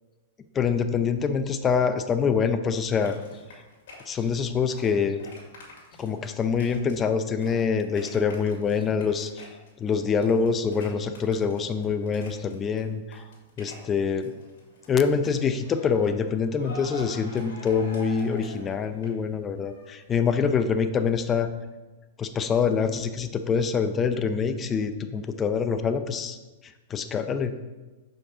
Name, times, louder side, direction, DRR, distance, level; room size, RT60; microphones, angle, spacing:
voice 1, 0.5-3.2 4.1-5.2 6.0-9.5 9.8-13.2 13.6-14.3 14.9-21.5 22.2-26.4 26.6-27.5, left 6 dB, 20° left, 9 dB, 0.5 m, -25 dB
sound 1, 3.0-12.8 13.1-14.9 15.2-20.1, left 2 dB, 70° left, 2.2 m, -46 dB
6.4 x 5.2 x 3.7 m, 1.2 s
hypercardioid pair, 130°, 0 cm